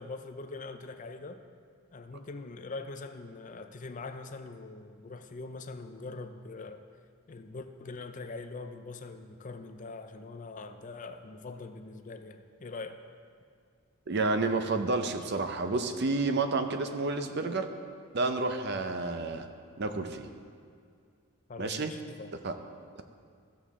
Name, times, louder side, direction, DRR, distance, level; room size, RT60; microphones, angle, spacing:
voice 1, 0.0-1.4 1.9-6.8 7.3-13.0 21.5-22.3, left 3 dB, 35° left, 8 dB, 0.4 m, -43 dB
voice 2, 14.1-17.7 18.1-19.5 19.8-20.3 21.6-21.9 22.4-22.5, right 3 dB, 50° right, 7 dB, 0.6 m, -30 dB
14.5 x 7.1 x 3.6 m, 2.1 s
head